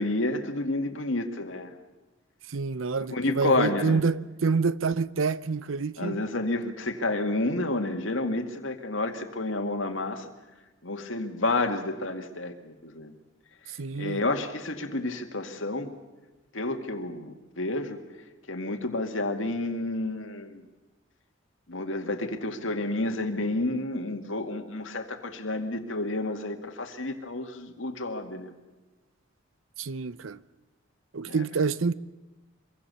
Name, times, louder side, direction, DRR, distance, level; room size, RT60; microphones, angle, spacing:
voice 1, 0.0-1.7 3.1-4.0 6.0-10.3 10.8-13.1 13.7-15.9 16.5-18.0 18.5-20.6 21.7-28.5 31.3-31.4, left 2 dB, 70° left, 2.2 m, -30 dB
voice 2, 2.5-6.2 13.8-14.2 29.8-30.4 31.1-31.9, right 4 dB, 90° right, 0.7 m, -27 dB
25.0 x 23.0 x 7.0 m
head